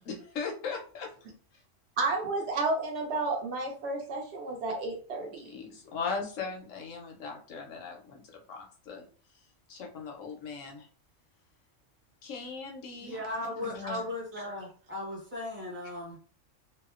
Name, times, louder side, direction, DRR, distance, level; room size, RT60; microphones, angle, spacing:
voice 1, 0.1-1.1 5.2-8.2 8.5-9.1 9.7-10.9 12.2-13.3 13.6-14.0, left 5 dB, 90° left, 2 dB, 1.0 m, -38 dB
voice 2, 2.0-5.6, right 3 dB, 65° right, 2 dB, 0.8 m, -31 dB
voice 3, 13.0-16.2, left 1 dB, 10° right, -3 dB, 0.7 m, -37 dB
2.7 x 2.0 x 2.4 m, 0.41 s
omnidirectional pair, 1.3 m